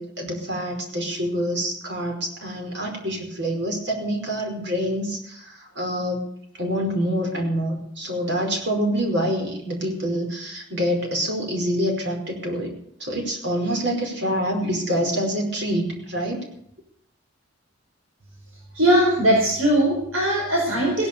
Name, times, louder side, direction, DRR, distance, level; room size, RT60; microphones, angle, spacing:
voice 1, 0.0-6.2 6.6-12.7 13.0-16.4, equal, 55° right, 2 dB, 5.1 m, -26 dB
voice 2, 18.7-21.1, right 1 dB, 80° right, -2 dB, 4.8 m, -19 dB
18.0 x 11.0 x 7.0 m, 0.70 s
head